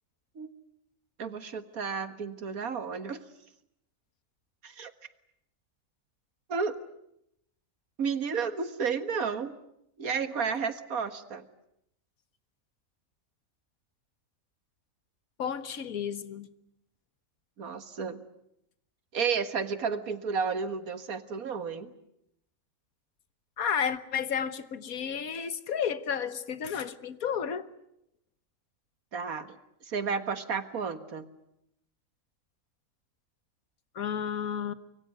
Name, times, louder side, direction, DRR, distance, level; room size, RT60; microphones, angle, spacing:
voice 1, 1.2-3.2 4.6-4.9 6.5-6.8 8.0-9.5 10.0-11.4 17.6-18.2 19.1-21.9 29.1-29.6 29.8-31.3, right 5 dB, 85° right, 10 dB, 2.0 m, -32 dB
voice 2, 15.4-16.5 23.6-27.7 34.0-34.7, left 7 dB, 85° left, 13 dB, 1.7 m, -32 dB
25.0 x 23.5 x 9.3 m, 0.79 s
omnidirectional pair, 1.5 m